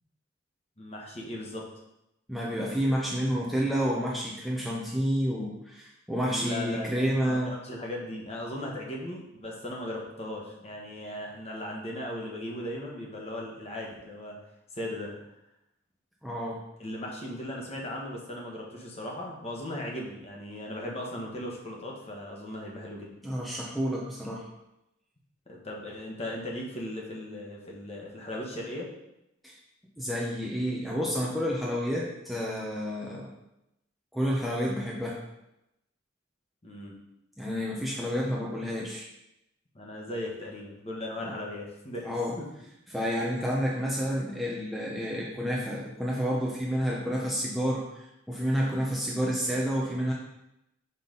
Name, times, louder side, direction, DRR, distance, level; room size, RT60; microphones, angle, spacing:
voice 1, 0.8-1.6 6.3-14.4 14.7-15.1 16.8-23.1 25.5-28.9 36.6-36.9 39.7-42.1 42.4-42.5, left 1 dB, 30° left, -2 dB, 1.3 m, -37 dB
voice 2, 2.3-7.5 16.2-16.6 23.2-24.5 29.4-29.6 30.0-33.3 34.1-35.2 37.4-39.1 41.2-41.4 42.0-42.3 42.9-50.1, equal, ahead, -4 dB, 0.8 m, -30 dB
6.0 x 5.5 x 3.9 m, 0.87 s
head